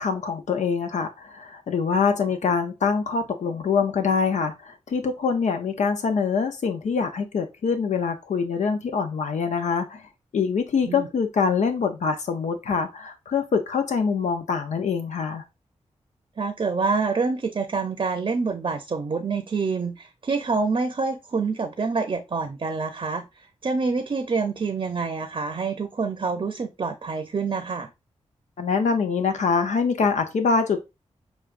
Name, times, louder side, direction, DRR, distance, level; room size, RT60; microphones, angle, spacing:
voice 1, 0.0-10.0 10.3-15.4 28.6-30.8, left 5 dB, 75° left, 0.6 m, -24 dB
voice 2, 16.4-27.9, right 4 dB, 45° right, 0.7 m, -27 dB
6.2 x 2.3 x 2.5 m
cardioid pair, 55°, 12 cm